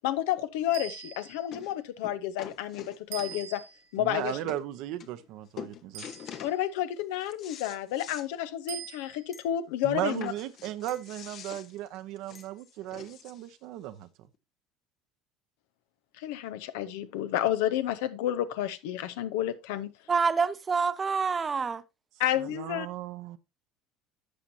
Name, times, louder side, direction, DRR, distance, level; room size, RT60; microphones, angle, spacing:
voice 1, 0.0-3.6 3.9-4.4 6.4-10.3 16.2-19.9 22.2-22.9, left 12 dB, 80° left, 0.8 m, -30 dB
sound 1, 0.7-1.6 3.1-4.0 5.9-6.7 8.7-9.4, right 10 dB, 85° right, 1.3 m, -43 dB
sound 2, 0.8-0.9 1.5-1.7 2.0-3.6 4.2-4.3 4.5-4.6 5.0-5.3 5.6-6.6 7.0-8.3 8.6-8.7 9.1-9.2 10.0-13.5 14.3-14.4, left 8 dB, 55° left, 1.0 m, -45 dB
voice 2, 4.0-6.0 9.8-14.1 22.4-23.4, right 13 dB, 70° right, 0.9 m, -36 dB
sound 3, 9.3-9.6 10.9-11.2 12.3-12.6, left 4 dB, 25° left, 1.5 m, -54 dB
voice 3, 20.1-21.8, right 5 dB, 30° right, 0.8 m, -27 dB
11.5 x 7.2 x 2.7 m
supercardioid pair, 90°, 0 cm